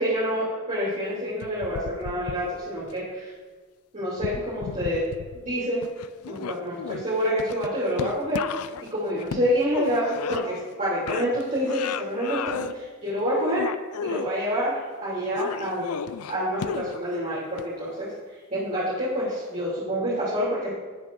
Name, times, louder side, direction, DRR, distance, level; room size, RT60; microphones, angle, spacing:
voice 1, 0.0-3.3 3.9-5.0 5.4-5.8 6.3-8.5 8.9-13.6 14.0-16.0 16.3-18.1 18.5-20.7, equal, 35° right, -9 dB, 3.0 m, -27 dB
sound 1, 1.4-2.9 4.1-5.6 5.8-10.8 11.1-12.7 13.1-14.3 15.4-17.1 17.6-17.7, left 6 dB, 90° left, 0.4 m, -34 dB
19.0 x 7.9 x 2.6 m, 1.4 s
head